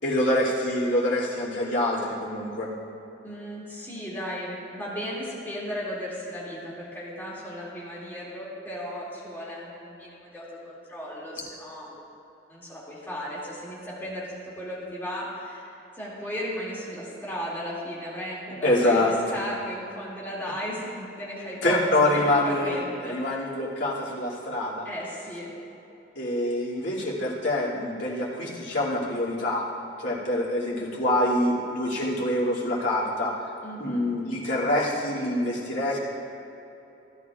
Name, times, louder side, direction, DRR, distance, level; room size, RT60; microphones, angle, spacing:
voice 1, 0.0-2.7 18.6-19.4 21.6-24.9 26.2-29.6 30.0-33.4 33.8-36.0, left 1 dB, 85° left, -6 dB, 2.4 m, -25 dB
voice 2, 3.2-12.0 12.5-15.7 16.0-23.2 24.8-25.5 33.6-34.1, equal, 10° left, -7 dB, 2.2 m, -35 dB
16.0 x 11.0 x 2.4 m, 3.0 s
head